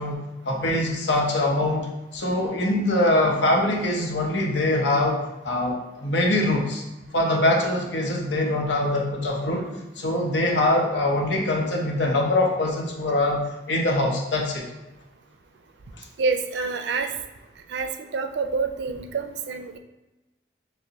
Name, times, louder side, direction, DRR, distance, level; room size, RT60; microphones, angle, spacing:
voice 1, 0.0-6.8 7.1-14.7 16.0-16.1, left 1 dB, 85° left, 0 dB, 0.8 m, -23 dB
voice 2, 16.2-17.1 17.7-19.8, right 4 dB, 75° right, 7 dB, 0.4 m, -27 dB
6.3 x 2.1 x 2.8 m, 1.1 s
head